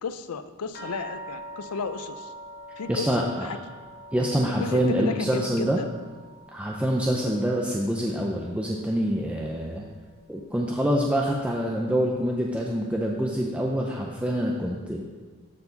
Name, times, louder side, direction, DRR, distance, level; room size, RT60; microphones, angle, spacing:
voice 1, 0.0-2.3 2.8-3.1 3.4-3.6 4.5-5.9, left 5 dB, 90° left, 11 dB, 0.5 m, -33 dB
sound 1, 0.7-9.6 9.9-10.8 11.5-11.6 12.0-12.2, right 2 dB, 45° left, 0.8 m, -45 dB
voice 2, 2.9-3.5 4.1-5.8 6.5-9.9 10.3-15.0, equal, 5° right, -1 dB, 0.5 m, -26 dB
12.0 x 4.7 x 3.9 m, 1.5 s
head